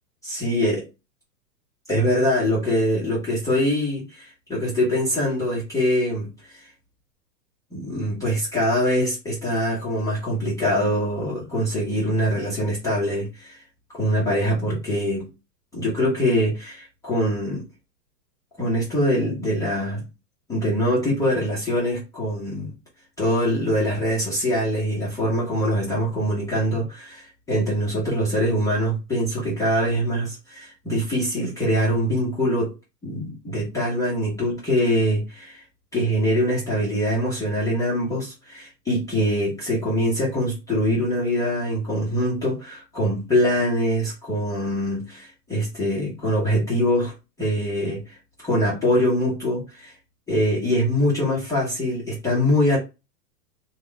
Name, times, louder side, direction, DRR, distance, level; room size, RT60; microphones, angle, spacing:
voice 1, 0.2-0.8 1.9-6.7 7.7-13.6 13.9-15.3 15.7-17.7 18.6-20.0 20.5-22.7 23.2-32.7 33.0-35.6 35.9-47.1 47.4-49.9 50.3-52.8, equal, 5° left, 0.6 m, -23 dB
2.8 x 2.2 x 3.7 m
hypercardioid pair, 145°, 49 cm